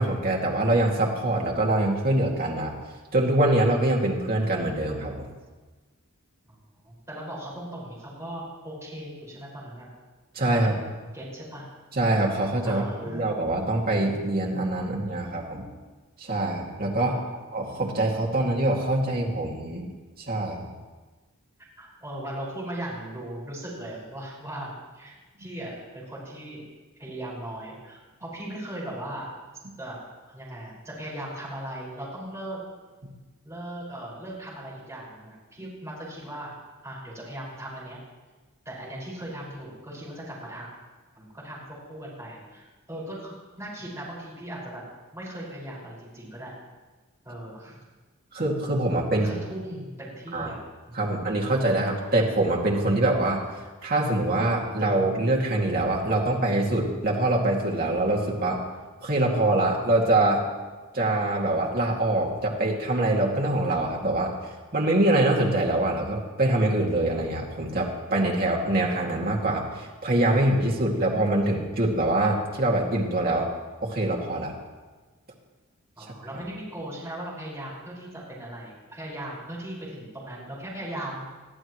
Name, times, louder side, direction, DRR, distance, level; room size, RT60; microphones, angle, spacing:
voice 1, 0.0-2.7 3.1-5.3 10.3-10.7 11.9-15.7 16.2-17.2 17.5-19.9 20.2-20.7 33.0-33.1 48.3-49.3 50.3-50.5 50.9-53.4 53.8-58.6 59.0-60.4 60.9-64.3 64.7-73.5 73.8-74.5, right 1 dB, 45° right, -2 dB, 2.3 m, -24 dB
voice 2, 6.5-9.9 10.5-10.7 11.1-11.6 12.6-13.3 15.5-15.8 17.0-17.4 21.8-26.7 27.0-29.3 29.8-30.0 30.3-32.6 33.4-36.5 36.8-38.0 38.6-40.7 41.2-44.8 45.1-46.6 47.2-47.8 49.1-50.6 76.0-81.2, right 1 dB, 15° right, -7 dB, 5.6 m, -38 dB
22.0 x 14.0 x 3.2 m, 1.3 s
head